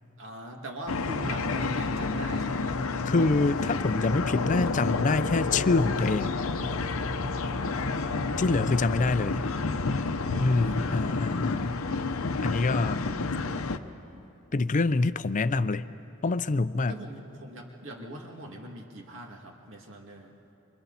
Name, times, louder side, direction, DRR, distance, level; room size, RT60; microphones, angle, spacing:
voice 1, 0.2-2.6 7.4-8.6 10.5-11.1 16.9-20.3, right 1 dB, 60° right, 1 dB, 2.3 m, -42 dB
sound 1, 0.9-13.8, left 3 dB, 65° left, 0.8 m, -30 dB
voice 2, 3.1-6.4 8.4-9.5 10.4-11.8 12.4-13.0 14.5-15.9 16.2-17.0, left 3 dB, 35° left, 14 dB, 0.5 m, -25 dB
26.5 x 25.5 x 4.1 m, 2.9 s
head